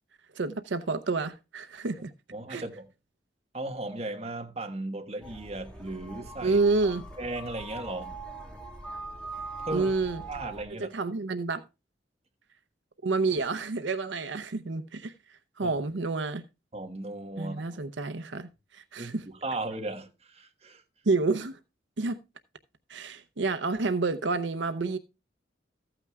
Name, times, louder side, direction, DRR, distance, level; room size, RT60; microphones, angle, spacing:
voice 1, 0.3-2.1 2.5-2.6 6.4-7.0 9.7-10.2 10.7-11.6 13.0-16.4 17.4-19.2 21.1-21.6 22.0-22.2 22.9-25.0, right 3 dB, 75° right, 0.7 m, -29 dB
voice 2, 2.3-2.9 3.5-8.2 9.6-9.9 10.3-10.9 15.6-15.7 16.7-17.8 19.0-20.8, right 2 dB, 35° right, 1.4 m, -36 dB
sound 1, 5.2-10.6, right 3 dB, 5° left, 1.9 m, -42 dB
14.0 x 8.9 x 2.3 m
head